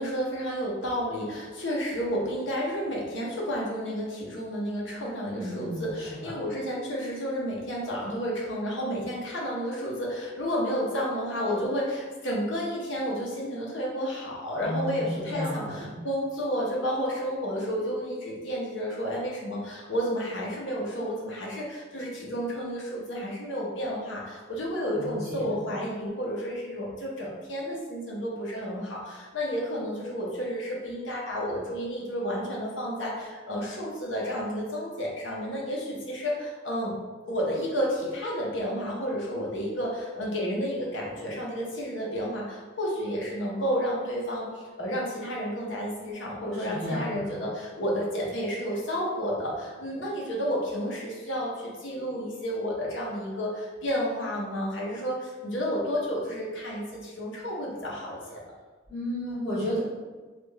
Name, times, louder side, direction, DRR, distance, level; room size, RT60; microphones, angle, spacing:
voice 1, 0.0-36.9 37.3-58.4, equal, 70° left, -4 dB, 0.8 m, -31 dB
voice 2, 5.3-6.2 14.6-16.0 24.9-25.6 46.5-47.3 58.9-59.8, left 1 dB, ahead, -16 dB, 1.2 m, -33 dB
3.3 x 2.4 x 3.2 m, 1.3 s
head